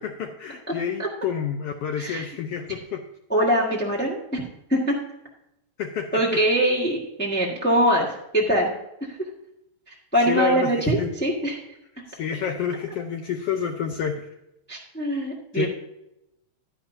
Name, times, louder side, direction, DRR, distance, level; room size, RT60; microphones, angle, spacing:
voice 1, 0.0-3.0 5.8-6.2 10.3-11.1 12.1-14.3 15.5-15.7, left 7 dB, 80° left, 5 dB, 1.3 m, -29 dB
voice 2, 3.3-4.4 4.7-5.0 6.1-8.7 9.9-11.6 14.7-15.7, right 1 dB, 10° left, -4 dB, 0.7 m, -23 dB
11.5 x 10.0 x 2.7 m, 0.84 s
omnidirectional pair, 3.5 m